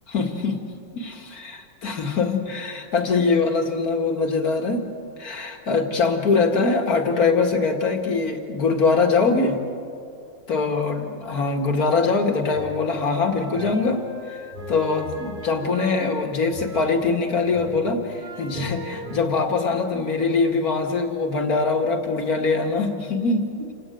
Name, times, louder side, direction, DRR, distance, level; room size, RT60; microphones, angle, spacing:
voice 1, 0.1-0.6 0.9-4.8 5.2-9.6 10.5-14.0 14.3-14.4 14.7-23.7, left 4 dB, 50° left, 4 dB, 2.4 m, -23 dB
sound 1, 12.4-17.2 17.5-19.3, equal, 30° right, 3.1 m, -39 dB
28.5 x 16.5 x 9.2 m, 2.6 s
omnidirectional pair, 2.1 m